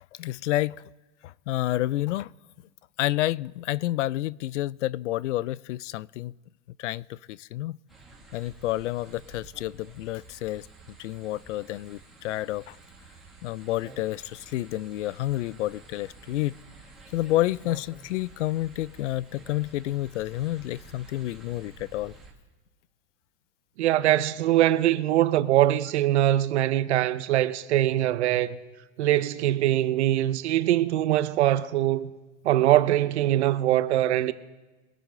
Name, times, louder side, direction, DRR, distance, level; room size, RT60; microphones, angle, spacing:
voice 1, 0.2-0.8 1.2-2.3 3.0-6.3 6.8-7.8 8.3-10.7 11.0-12.8 13.4-16.6 17.1-22.1, left 16 dB, 90° left, 0.5 m, -29 dB
sound 1, 7.9-22.3, right 3 dB, ahead, 2.0 m, -50 dB
voice 2, 23.8-28.6 29.0-32.1 32.4-34.3, right 13 dB, 70° right, 0.9 m, -22 dB
23.5 x 9.1 x 3.8 m
supercardioid pair, 165°, 35 cm